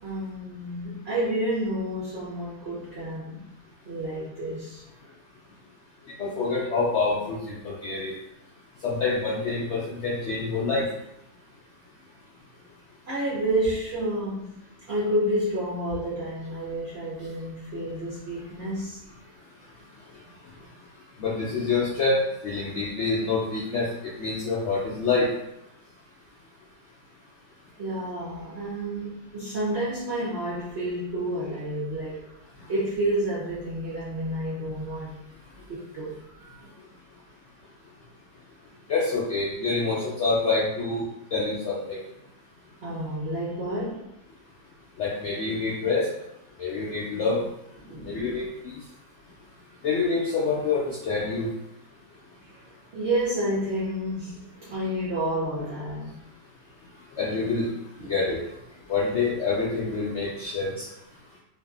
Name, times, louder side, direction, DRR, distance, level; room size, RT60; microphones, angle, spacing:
voice 1, 0.0-3.5 3.8-4.8 13.1-14.6 14.9-19.0 27.8-32.3 32.7-35.2 35.7-36.6 42.8-44.1 47.8-48.4 52.5-56.2 58.0-58.1, right 1 dB, 60° right, -8 dB, 0.7 m, -30 dB
voice 2, 6.2-8.1 8.8-10.8 21.2-23.9 24.2-25.3 38.9-41.0 41.3-42.0 45.0-46.1 46.6-47.4 48.0-48.5 49.8-51.5 57.2-57.7 58.1-58.4 58.9-60.8, left 4 dB, 70° left, -7 dB, 0.6 m, -26 dB
2.6 x 2.5 x 2.3 m, 0.81 s
omnidirectional pair, 1.7 m